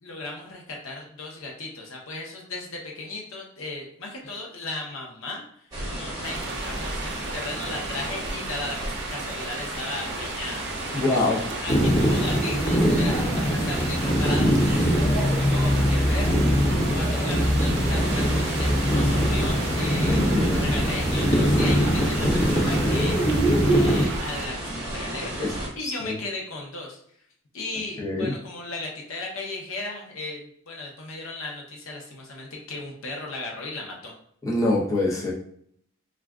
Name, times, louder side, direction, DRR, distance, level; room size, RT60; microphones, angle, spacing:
voice 1, 0.0-10.6 10.9-11.2 11.6-16.6 16.9-23.2 23.7-27.0 27.5-34.1, left 2 dB, 80° left, -1 dB, 0.7 m, -36 dB
sound 1, 5.7-25.7, right 1 dB, 20° right, 0.9 m, -34 dB
sound 2, 6.2-24.5, right 4 dB, 55° right, 0.4 m, -37 dB
voice 2, 10.9-11.5 11.9-12.2 20.3-20.6 25.4-25.5 25.8-26.1 28.0-28.3 34.4-35.3, left 2 dB, 15° left, -5 dB, 0.6 m, -25 dB
sound 3, 11.7-24.1, equal, 50° left, 1.0 m, -22 dB
2.4 x 2.2 x 3.5 m, 0.66 s
head